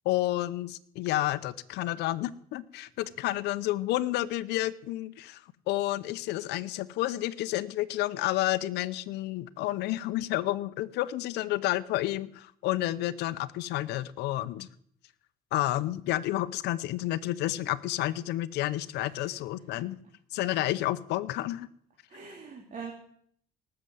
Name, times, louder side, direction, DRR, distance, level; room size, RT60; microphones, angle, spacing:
voice 1, 0.0-5.4 5.7-14.7 15.5-20.0 20.3-21.7, left 15 dB, 85° left, 14 dB, 0.7 m, -30 dB
voice 2, 22.1-22.9, right 5 dB, 45° right, 1 dB, 2.7 m, -43 dB
18.5 x 6.8 x 7.7 m, 0.63 s
cardioid pair, 110°, 17 cm